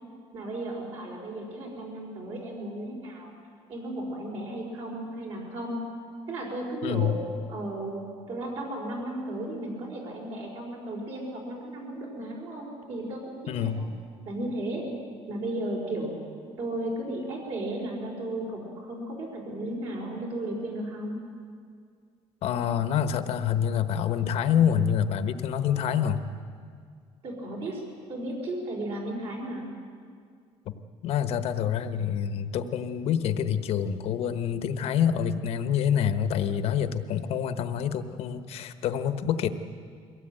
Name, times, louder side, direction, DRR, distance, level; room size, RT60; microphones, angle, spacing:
voice 1, 0.3-3.3 3.7-5.9 6.3-7.2 7.5-13.9 14.2-14.8 15.3-16.1 16.6-21.2 27.2-27.8 28.1-29.7, right 1 dB, 55° right, -2 dB, 4.8 m, -34 dB
voice 2, 6.8-7.2 13.5-13.9 22.4-26.2 30.6-30.7 31.0-39.5, left 8 dB, 65° left, 10 dB, 1.2 m, -27 dB
23.0 x 17.0 x 9.1 m, 2.1 s
cardioid pair, 165°, 11 cm